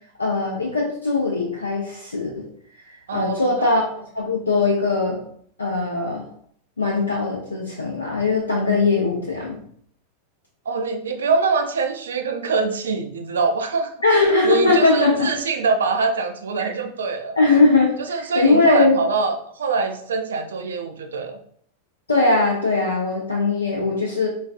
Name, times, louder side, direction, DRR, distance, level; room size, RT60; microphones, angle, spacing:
voice 1, 0.2-2.4 3.1-5.2 5.6-6.3 6.8-9.6 14.0-15.3 16.6-16.7 17.4-19.0 22.1-24.3, left 3 dB, 75° left, -2 dB, 0.5 m, -20 dB
voice 2, 3.1-3.7 10.7-13.9 14.4-17.4 18.1-21.4, right 4 dB, 65° right, 6 dB, 0.4 m, -24 dB
3.9 x 2.3 x 2.3 m, 0.63 s
figure-of-eight pair, 90°, 0 cm